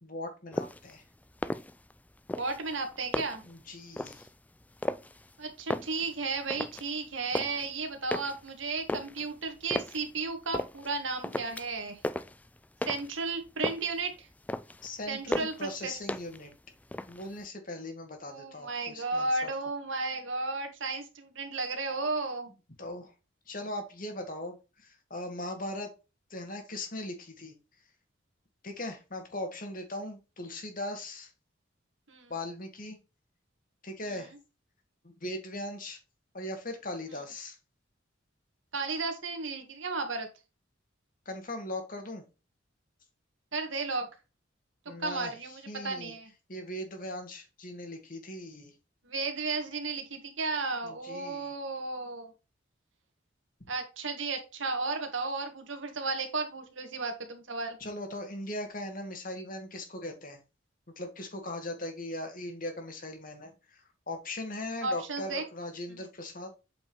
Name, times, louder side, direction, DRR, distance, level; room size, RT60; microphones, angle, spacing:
voice 1, 0.0-1.0 3.5-4.3 14.8-16.5 17.1-19.5 22.8-23.1 23.5-25.9 26.3-27.5 28.6-31.3 32.3-33.0 33.8-34.3 35.0-36.0 36.3-37.6 41.3-42.2 44.9-45.3 45.7-46.1 46.5-48.7 50.8-51.5 57.8-60.4 61.0-66.5, left 1 dB, 45° left, 5 dB, 2.3 m, -39 dB
sound 1, 0.5-0.9 1.3-2.0 2.3-3.5 4.0-4.3 4.8-5.3 5.6-6.9 7.1-7.7 8.1-10.0 10.5-10.9 11.2-11.8 12.0-13.2 13.5-14.0 14.3-14.9 15.3-15.7 16.1-16.5 16.8-17.5, left 1 dB, 10° left, 0.4 m, -35 dB
voice 2, 2.4-3.4 5.4-12.0 12.9-14.3 15.1-15.9 18.2-22.5 32.1-32.3 34.0-34.1 38.7-40.3 43.5-44.1 45.0-46.3 49.0-52.3 53.7-57.8 64.8-65.4, right 3 dB, 80° right, 6 dB, 2.0 m, -34 dB
8.3 x 5.2 x 3.1 m, 0.29 s
head